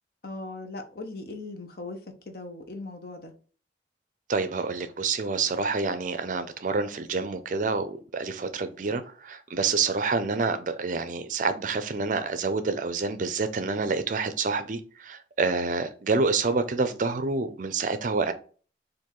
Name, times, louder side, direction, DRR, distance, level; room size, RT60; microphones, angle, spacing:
voice 1, 0.2-3.3, left 2 dB, 55° left, 0.9 m, -39 dB
voice 2, 4.3-18.3, right 4 dB, 45° right, 0.5 m, -28 dB
4.5 x 2.6 x 3.7 m
head